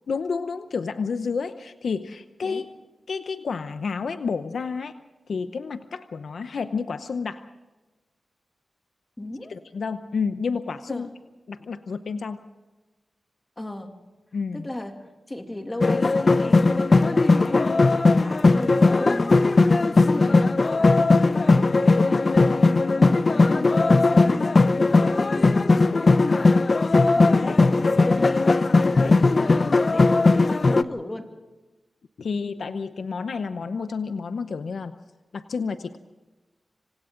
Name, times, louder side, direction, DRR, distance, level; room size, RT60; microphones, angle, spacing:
voice 1, 0.1-2.7 3.1-5.0 5.3-7.4 9.4-11.1 11.5-12.4 14.3-14.7 27.4-27.6 28.9-29.2 32.2-35.0 35.3-36.0, left 5 dB, 75° left, 10 dB, 0.8 m, -30 dB
voice 2, 9.2-9.5 10.9-11.1 13.6-13.9 14.5-26.5 27.2-28.5 28.9-31.3, left 1 dB, 20° left, 4 dB, 2.7 m, -36 dB
sound 1, 15.8-30.8, left 3 dB, 45° left, 0.7 m, -18 dB
27.0 x 26.0 x 3.9 m, 1.2 s
wide cardioid pair, 80°, 0 cm